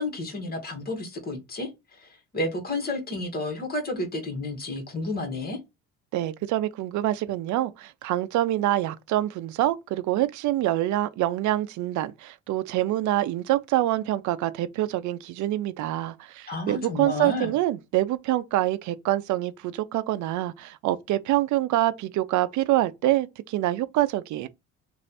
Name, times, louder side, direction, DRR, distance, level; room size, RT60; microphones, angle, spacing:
voice 1, 0.0-5.6 16.5-17.5, left 2 dB, 30° left, 1.5 m, -31 dB
voice 2, 6.1-24.5, right 14 dB, 65° right, 0.5 m, -26 dB
3.1 x 2.6 x 4.1 m
cardioid pair, 125°, 31 cm